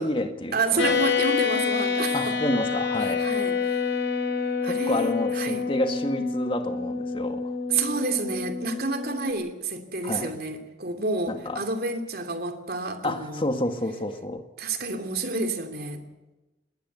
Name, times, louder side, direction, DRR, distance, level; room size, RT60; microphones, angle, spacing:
voice 1, 0.0-1.0 2.1-3.3 4.6-7.5 10.0-10.4 11.3-11.6 13.0-14.4, left 1 dB, 30° left, 6 dB, 1.8 m, -29 dB
voice 2, 0.5-2.4 3.1-3.8 4.6-5.6 7.7-13.4 14.6-16.0, right 3 dB, 50° right, 5 dB, 2.9 m, -29 dB
sound 1, 0.8-9.3, left 5 dB, 85° left, 3.7 m, -27 dB
20.5 x 18.5 x 8.3 m, 1.1 s
head